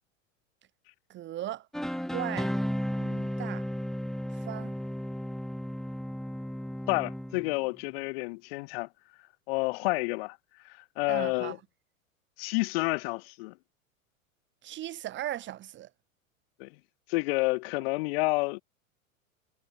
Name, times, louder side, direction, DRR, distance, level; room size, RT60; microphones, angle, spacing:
voice 1, 1.1-1.7 2.1-2.5 3.4-3.6 4.3-4.7 11.1-11.6 14.6-15.9, right 13 dB, 25° right, 1.1 m, -37 dB
sound 1, 1.7-7.7, equal, ahead, 3.4 m, -34 dB
voice 2, 3.0-3.3 6.9-8.9 9.5-10.4 10.6-11.6 12.4-13.5 16.6-16.7 17.1-18.6, left 26 dB, 45° left, 1.1 m, -30 dB
figure-of-eight pair, 90°, 41 cm